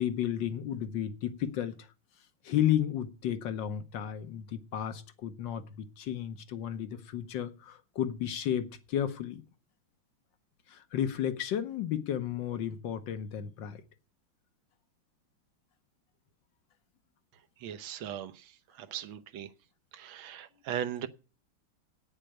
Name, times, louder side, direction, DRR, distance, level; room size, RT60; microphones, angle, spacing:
voice 1, 0.0-1.9 2.4-9.4 10.7-13.8, left 10 dB, 70° left, 1.6 m, -33 dB
voice 2, 17.6-19.5 19.9-21.1, right 9 dB, 80° right, 1.6 m, -38 dB
8.9 x 6.7 x 8.8 m
omnidirectional pair, 2.2 m